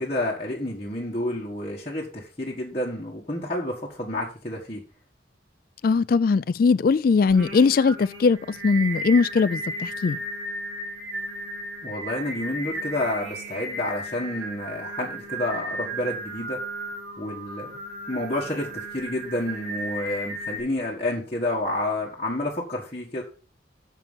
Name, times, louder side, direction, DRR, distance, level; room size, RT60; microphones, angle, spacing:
voice 1, 0.0-4.8 11.8-16.6 17.2-17.8 18.1-23.2, left 1 dB, 30° left, 1.7 m, -29 dB
voice 2, 5.8-8.4 8.6-10.2, left 5 dB, 50° left, 0.3 m, -20 dB
Singing, 7.3-20.6, right 1 dB, 75° right, 4.2 m, -35 dB
6.9 x 5.9 x 7.2 m
head